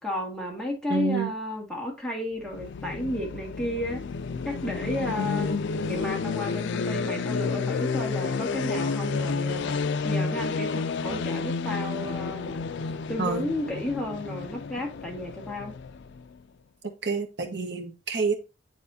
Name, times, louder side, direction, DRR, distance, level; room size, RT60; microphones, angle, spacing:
voice 1, 0.0-4.0 4.4-5.6 5.9-12.6 13.1-15.7, left 1 dB, 5° left, 1.9 m, -32 dB
voice 2, 0.9-1.3 13.2-13.5 16.8-18.3, right 4 dB, 65° right, 1.4 m, -28 dB
sound 1, 2.4-16.3, left 4 dB, 65° left, 0.4 m, -30 dB
9.3 x 4.2 x 2.7 m
head